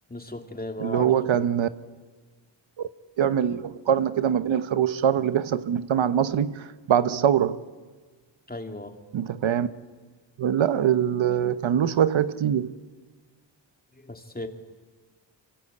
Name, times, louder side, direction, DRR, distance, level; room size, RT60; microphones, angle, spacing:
voice 1, 0.1-1.5 8.5-9.0 14.0-14.5, left 1 dB, 20° left, 2.7 m, -36 dB
voice 2, 0.8-1.7 2.8-2.9 3.2-7.6 9.1-9.7 10.4-12.7, right 9 dB, 80° right, 1.1 m, -23 dB
26.0 x 25.5 x 8.6 m
cardioid pair, 75°, 46 cm